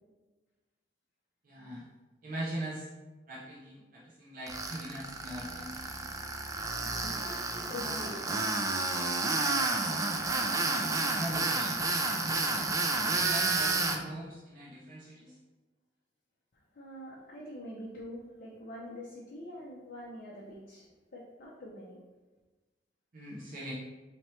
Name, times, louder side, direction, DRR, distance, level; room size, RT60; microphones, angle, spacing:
voice 1, 1.4-1.8 2.2-2.9 3.3-6.1 10.5-11.8 12.1-12.5 13.0-15.4 23.1-23.7, right 1 dB, 50° right, -6 dB, 0.7 m, -41 dB
Tools, 4.5-14.0, right 3 dB, 20° right, 0.3 m, -31 dB
voice 2, 6.8-8.8 16.7-20.9 21.1-22.0, left 1 dB, 50° left, -4 dB, 0.6 m, -45 dB
4.3 x 2.9 x 3.1 m, 1.2 s
head